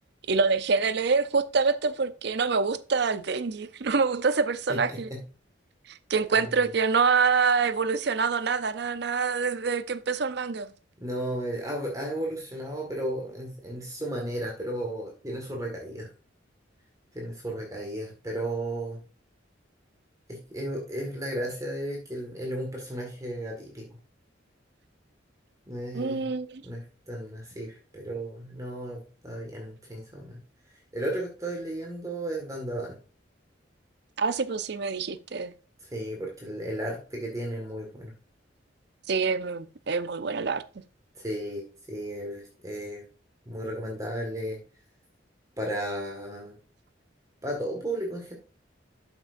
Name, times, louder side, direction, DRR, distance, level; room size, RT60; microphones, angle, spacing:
voice 1, 0.3-5.1 5.9-10.7 25.9-26.6 34.2-35.5 39.1-40.6, right 5 dB, 60° right, 0.6 m, -26 dB
voice 2, 4.7-5.2 6.4-6.5 11.0-16.1 17.1-19.0 20.3-23.9 25.7-26.3 26.6-30.4 30.9-32.9 35.8-38.1 41.2-43.0 43.5-44.6 45.6-46.5 47.4-48.3, right 1 dB, 20° right, 1.8 m, -34 dB
12.5 x 6.0 x 2.6 m
head